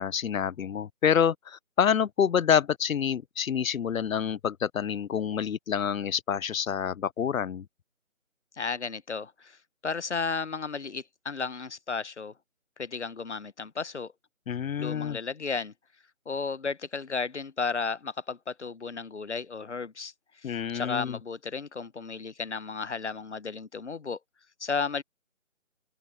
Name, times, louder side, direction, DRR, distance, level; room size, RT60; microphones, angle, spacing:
voice 1, 0.0-7.7 14.5-15.2 20.4-21.2, left 8 dB, 90° left, 0.6 m, -27 dB
voice 2, 8.6-12.3 12.8-14.1 14.8-15.7 16.3-20.1 20.4-24.2 24.6-25.0, left 4 dB, 55° left, 1.0 m, -34 dB
open air
figure-of-eight pair, 170°, 40 cm